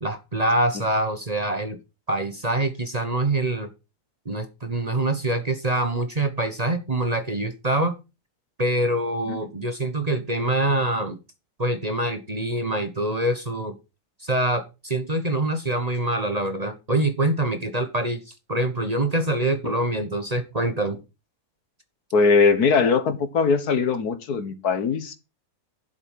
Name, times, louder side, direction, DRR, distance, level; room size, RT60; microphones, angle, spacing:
voice 1, 0.0-1.8 2.1-3.7 4.2-7.9 8.6-11.2 11.6-13.8 14.2-21.0, right 1 dB, 25° right, 1.2 m, -25 dB
voice 2, 22.1-25.2, left 5 dB, 70° left, 1.8 m, -20 dB
11.0 x 7.9 x 5.6 m
omnidirectional pair, 1.7 m